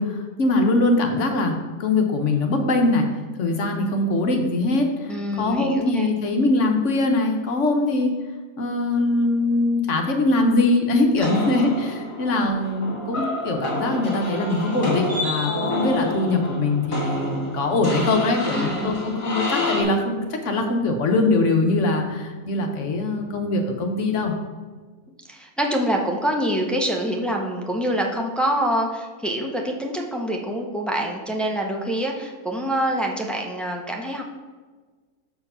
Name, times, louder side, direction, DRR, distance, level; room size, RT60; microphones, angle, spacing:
voice 1, 0.0-1.5 1.8-3.1 3.4-8.1 8.6-24.3, left 2 dB, 60° left, 4 dB, 1.1 m, -22 dB
voice 2, 5.1-6.1 12.3-12.5 18.5-19.0 25.3-34.2, right 1 dB, ahead, 0 dB, 0.4 m, -25 dB
sound 1, 11.2-19.8, left 2 dB, 35° left, 2.5 m, -29 dB
6.9 x 4.7 x 5.5 m, 1.4 s
omnidirectional pair, 1.6 m